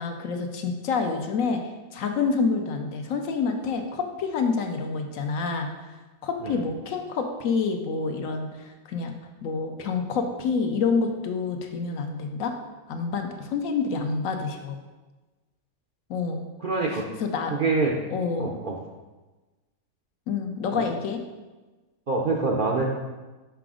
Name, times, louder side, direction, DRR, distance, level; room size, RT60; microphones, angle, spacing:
voice 1, 0.0-1.6 1.9-5.8 6.2-9.2 9.4-12.5 12.9-14.8 16.1-16.5 16.9-17.5 18.1-18.5 20.3-21.2, left 4 dB, 70° left, 4 dB, 1.0 m, -28 dB
voice 2, 16.6-17.0 17.5-17.9 18.4-18.7 20.7-20.8 22.1-22.8, right 3 dB, 55° right, -2 dB, 0.6 m, -25 dB
5.9 x 4.9 x 3.6 m, 1.2 s
omnidirectional pair, 1.5 m